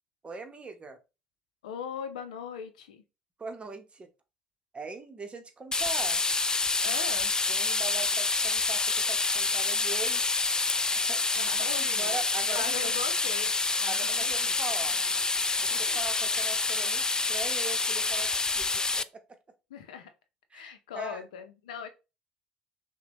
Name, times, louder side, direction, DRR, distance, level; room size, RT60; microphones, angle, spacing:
voice 1, 0.2-1.0 3.4-4.1 4.7-6.2 7.5-10.4 11.0-11.2 11.8-12.9 13.9-15.0 15.8-19.0 20.5-21.2, right 4 dB, 25° right, 7 dB, 0.9 m, -41 dB
voice 2, 1.6-3.0 6.8-7.3 11.4-12.2 12.5-14.5 15.0-15.1 15.7-16.0 19.7-20.1 20.5-21.9, left 8 dB, 80° left, 8 dB, 0.6 m, -40 dB
sound 1, 5.7-19.0, left 3 dB, 20° left, 0.3 m, -27 dB
5.8 x 2.2 x 2.9 m, 0.28 s
hypercardioid pair, 55°, 4 cm